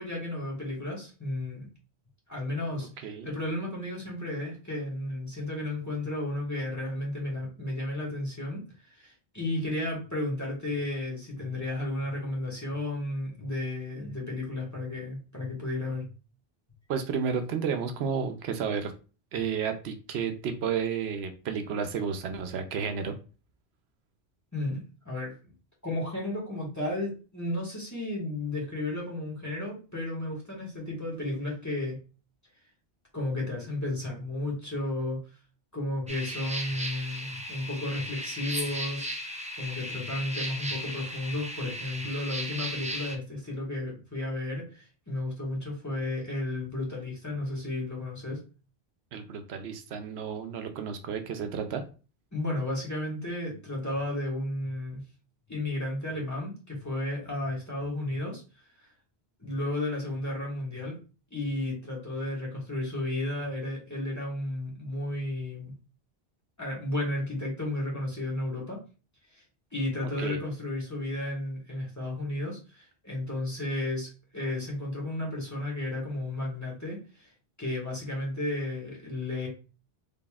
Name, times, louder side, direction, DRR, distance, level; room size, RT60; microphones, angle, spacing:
voice 1, 0.0-1.7 2.3-8.6 8.9-16.1 24.5-25.3 25.8-32.0 33.1-35.2 35.7-48.4 52.3-55.0 55.5-58.4 59.4-60.9 61.3-65.7 66.6-68.8 69.3-69.4 69.7-77.3 77.6-79.5, left 1 dB, 15° left, -3 dB, 1.5 m, -33 dB
voice 2, 16.9-18.9 19.3-23.1 49.1-51.8 70.2-70.4, right 6 dB, 85° right, 7 dB, 0.9 m, -32 dB
sound 1, 36.1-43.1, equal, 10° right, 0.4 m, -36 dB
4.0 x 3.4 x 2.3 m, 0.34 s
omnidirectional pair, 1.0 m